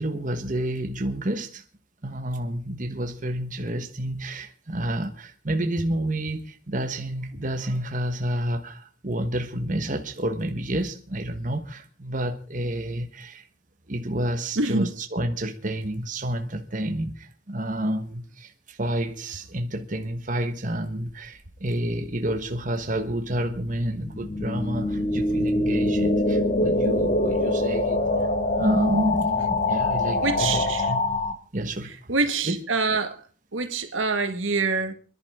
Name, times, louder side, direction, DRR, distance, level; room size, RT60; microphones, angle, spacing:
voice 1, 0.0-1.6 2.0-13.5 13.9-28.0 28.6-30.6 30.9-31.0 31.5-32.1 32.5-32.6, right 1 dB, 40° right, 1.4 m, -29 dB
voice 2, 14.6-14.9 30.2-30.9 32.1-33.2 33.5-34.9, right 3 dB, 80° right, 1.9 m, -25 dB
sound 1, 22.0-31.3, left 2 dB, 40° left, 1.6 m, -25 dB
28.5 x 11.0 x 3.7 m
head